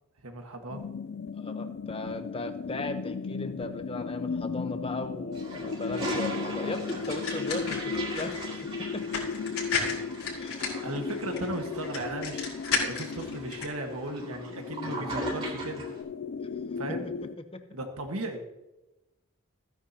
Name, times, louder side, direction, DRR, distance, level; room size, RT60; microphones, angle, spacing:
voice 1, 0.2-0.8 10.8-12.4 12.9-15.8 16.8-17.1 17.7-18.4, right 2 dB, 85° right, 4 dB, 1.5 m, -36 dB
sound 1, 0.7-17.4, left 5 dB, 50° left, 0.3 m, -36 dB
voice 2, 1.3-9.1 10.4-10.7 16.4-16.5 16.9-17.0 17.5-17.8, left 2 dB, 25° left, 7 dB, 0.9 m, -37 dB
Toilet flush, 5.3-16.0, right 1 dB, 25° right, 3.6 m, -39 dB
sound 2, 6.9-13.7, left 4 dB, 85° left, 4.5 m, -34 dB
16.0 x 10.0 x 2.9 m, 0.99 s
head